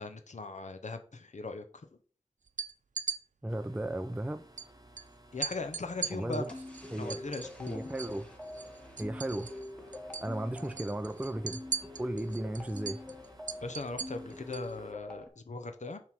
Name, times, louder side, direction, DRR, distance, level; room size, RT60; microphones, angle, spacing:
voice 1, 0.0-1.6 5.3-6.5 7.0-7.8 13.6-16.0, left 3 dB, 70° left, 0.7 m, -39 dB
sound 1, 2.5-3.2 4.6-4.7 5.0-5.1 5.4-8.2 8.5-9.7 9.9-10.3 10.6-14.7, right 5 dB, 80° right, 0.4 m, -39 dB
voice 2, 3.4-4.4 6.1-6.5 6.9-7.2 7.7-8.3 9.0-9.5 10.2-11.6 12.0-13.0, right 1 dB, 10° right, 0.4 m, -35 dB
Backrooms Ambience, 3.5-14.9, right 1 dB, 30° right, 1.0 m, -58 dB
sound 2, 6.5-15.3, left 1 dB, 10° left, 1.6 m, -45 dB
7.3 x 3.2 x 5.9 m
wide cardioid pair, 60°, 13 cm